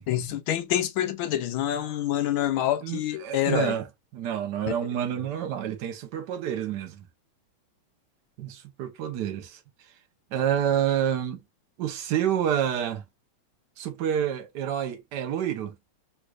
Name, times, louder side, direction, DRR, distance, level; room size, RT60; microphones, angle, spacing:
voice 1, 0.1-3.7 4.7-4.8, left 12 dB, 75° left, 1.5 m, -27 dB
voice 2, 2.8-3.8 4.1-7.1 8.4-9.6 10.3-11.4 11.8-13.0 13.8-15.7, right 9 dB, 65° right, 1.2 m, -28 dB
3.3 x 3.2 x 2.3 m
omnidirectional pair, 2.3 m